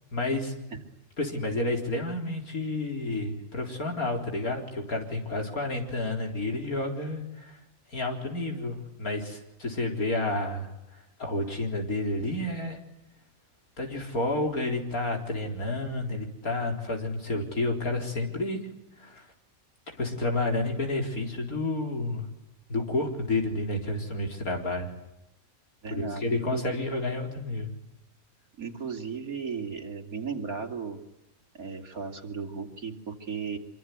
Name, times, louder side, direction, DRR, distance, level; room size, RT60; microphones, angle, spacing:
voice 1, 0.1-0.5 1.2-7.6 7.9-10.7 11.2-12.8 13.8-18.6 19.0-19.3 20.0-22.2 22.7-24.9 25.9-27.7, left 2 dB, 80° left, 2 dB, 4.6 m, -30 dB
voice 2, 25.8-26.6 28.6-31.0 31.5-33.6, right 5 dB, 80° right, 3 dB, 3.3 m, -35 dB
25.5 x 24.0 x 9.4 m, 0.94 s
omnidirectional pair, 1.5 m